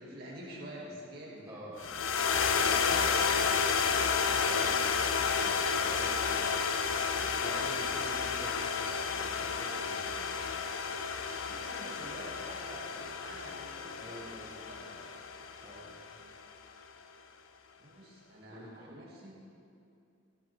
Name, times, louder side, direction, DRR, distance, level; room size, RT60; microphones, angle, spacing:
voice 1, 0.0-1.6 11.4-15.1 17.8-19.4, equal, 50° right, -4 dB, 2.2 m, -48 dB
voice 2, 1.5-2.0 2.6-3.8 4.0-6.7 7.2-10.3 14.0-14.6 15.6-16.2 18.5-19.0, right 1 dB, 15° right, -6 dB, 2.0 m, -47 dB
sound 1, 1.8-16.2, left 6 dB, 85° left, 0.6 m, -31 dB
13.0 x 9.8 x 3.5 m, 2.5 s
head